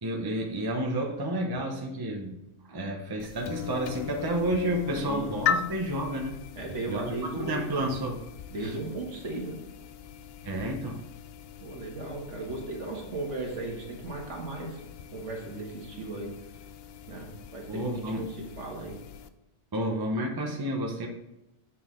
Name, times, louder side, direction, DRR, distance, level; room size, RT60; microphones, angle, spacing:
voice 1, 0.0-2.4 2.7-6.4 6.9-8.2 8.6-8.7 10.4-11.0 17.7-18.3 19.7-21.1, right 1 dB, 20° right, 1 dB, 0.8 m, -30 dB
sound 1, 3.2-19.3, left 8 dB, 65° left, 0.6 m, -39 dB
voice 2, 4.9-5.5 6.6-7.8 8.5-9.6 11.6-14.8 15.1-16.3 17.1-19.0, right 2 dB, 60° right, 0 dB, 1.9 m, -36 dB
7.7 x 6.4 x 3.8 m, 0.94 s
omnidirectional pair, 1.5 m